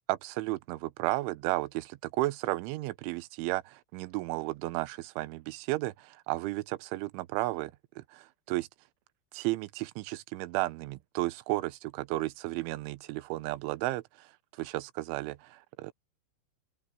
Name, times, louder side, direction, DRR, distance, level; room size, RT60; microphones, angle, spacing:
voice 1, 0.1-7.7 8.0-8.7 9.3-14.3 14.6-15.9, right 19 dB, 80° right, 3.1 m, -33 dB
open air
omnidirectional pair, 5.9 m